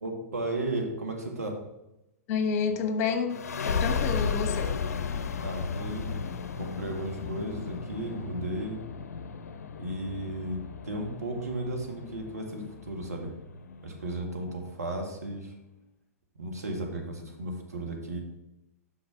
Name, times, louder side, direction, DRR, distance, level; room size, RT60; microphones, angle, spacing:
voice 1, 0.0-1.6 5.4-6.2 6.6-8.8 9.8-13.3 13.8-15.5 16.4-18.2, right 1 dB, 85° right, 1 dB, 1.6 m, -34 dB
voice 2, 2.3-3.4 3.6-4.7, left 6 dB, 45° left, 7 dB, 1.2 m, -29 dB
sound 1, 3.3-14.6, left 5 dB, 75° left, 0.5 m, -34 dB
5.9 x 3.9 x 6.1 m, 0.90 s
hypercardioid pair, 110°, 8 cm